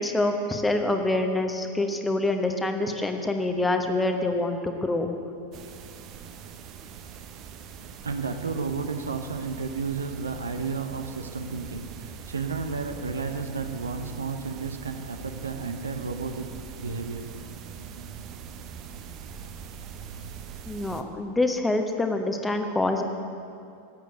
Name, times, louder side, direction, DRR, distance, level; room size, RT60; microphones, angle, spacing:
voice 1, 0.0-5.1 20.6-23.0, left 2 dB, 10° left, 5 dB, 1.0 m, -26 dB
sound 1, 5.5-21.0, right 6 dB, 35° right, 0.8 m, -42 dB
voice 2, 8.0-17.3 18.0-18.1, right 4 dB, 70° right, 7 dB, 0.9 m, -32 dB
12.5 x 8.2 x 7.9 m, 2.5 s
figure-of-eight pair, 90°, 0 cm